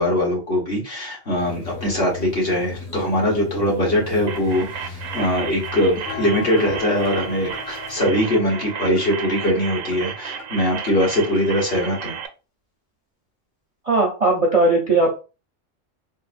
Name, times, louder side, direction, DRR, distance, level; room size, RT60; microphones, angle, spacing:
voice 1, 0.0-12.2, left 1 dB, 50° left, -3 dB, 1.3 m, -22 dB
sound 1, 1.4-8.1, left 3 dB, 20° left, 0.7 m, -37 dB
sound 2, 4.3-12.3, right 7 dB, 90° right, 1.0 m, -33 dB
sound 3, 6.1-12.1, left 6 dB, 80° left, 1.0 m, -38 dB
voice 2, 13.8-15.2, right 2 dB, 40° right, -2 dB, 0.5 m, -18 dB
3.6 x 2.1 x 2.5 m, 0.32 s
omnidirectional pair, 1.3 m